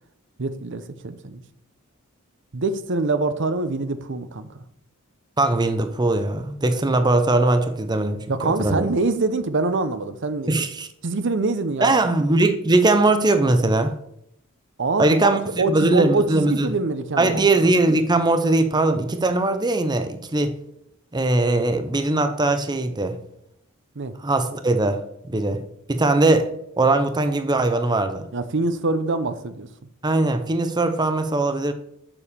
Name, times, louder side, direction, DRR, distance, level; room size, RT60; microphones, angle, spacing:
voice 1, 0.4-1.4 2.5-4.5 8.3-10.6 11.0-12.0 14.8-15.3 15.6-17.4 24.0-24.1 28.3-29.7, right 3 dB, 60° right, 0.7 m, -24 dB
voice 2, 5.4-8.9 10.5-10.9 11.8-14.0 15.0-16.7 17.2-20.6 21.1-23.2 24.2-25.0 25.3-25.6 25.9-26.5 26.8-28.2 30.0-31.7, right 2 dB, 20° right, 0.7 m, -20 dB
7.1 x 7.0 x 6.8 m
head